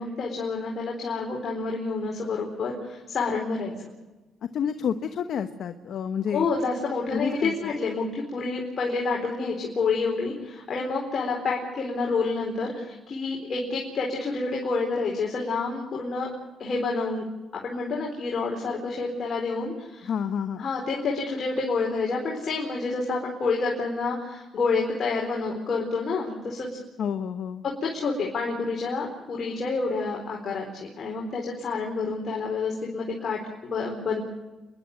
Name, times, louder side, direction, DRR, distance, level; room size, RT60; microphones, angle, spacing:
voice 1, 0.0-3.9 6.3-16.3 16.6-17.2 17.6-20.1 20.6-26.7 27.6-34.2, left 4 dB, 50° left, -1 dB, 4.3 m, -28 dB
voice 2, 4.5-6.5 7.1-7.5 20.0-20.7 27.0-27.6, left 7 dB, 65° left, 8 dB, 1.1 m, -29 dB
28.5 x 11.5 x 9.6 m, 1.1 s
cardioid pair, 90°, 0 cm